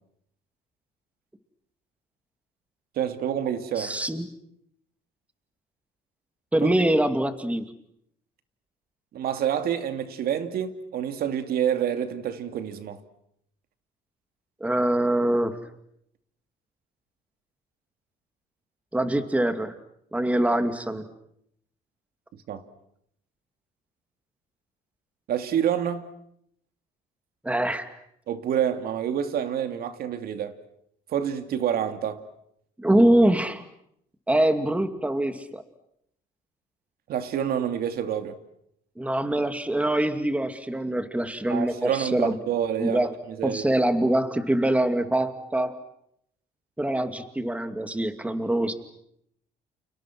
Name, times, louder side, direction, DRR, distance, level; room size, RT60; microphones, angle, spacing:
voice 1, 3.0-3.9 6.6-6.7 9.1-13.0 22.5-22.6 25.3-26.1 28.3-30.6 31.1-32.2 37.1-38.4 41.5-43.1 43.4-43.6, right 9 dB, 65° right, 2.7 m, -27 dB
voice 2, 3.8-4.3 6.5-7.7 14.6-15.5 18.9-19.7 20.1-21.1 27.4-27.9 32.8-33.6 34.3-35.6 39.0-42.3 42.8-43.1 43.4-45.7 46.8-48.7, right 1 dB, 10° right, 2.5 m, -24 dB
30.0 x 29.5 x 6.2 m
cardioid pair, 110°, 17 cm